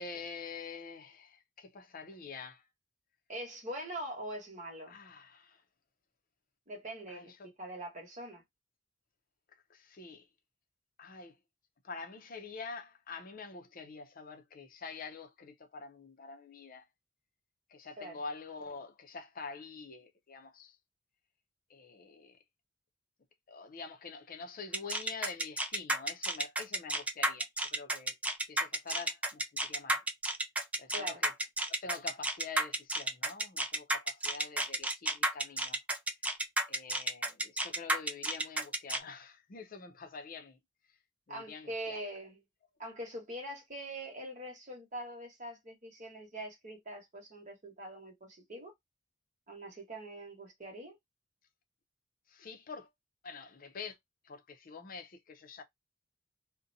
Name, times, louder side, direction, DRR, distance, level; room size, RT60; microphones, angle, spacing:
voice 1, 0.0-2.6 4.9-5.6 7.1-7.4 9.7-10.3 11.0-11.3 11.8-16.9 17.7-20.8 21.7-22.4 23.5-28.2 28.5-30.0 30.8-31.3 31.7-35.8 36.7-40.6 41.3-42.0 52.3-52.9 53.2-54.0 54.2-55.6, left 4 dB, 50° left, 0.5 m, -46 dB
voice 2, 3.3-5.0 6.7-7.3 7.6-8.4 18.0-18.2 30.9-31.2 41.3-42.4 42.8-48.7 49.5-51.0, right 1 dB, 40° right, 1.1 m, -43 dB
sound 1, 24.7-39.0, right 1 dB, 5° right, 0.3 m, -32 dB
2.6 x 2.1 x 2.6 m
head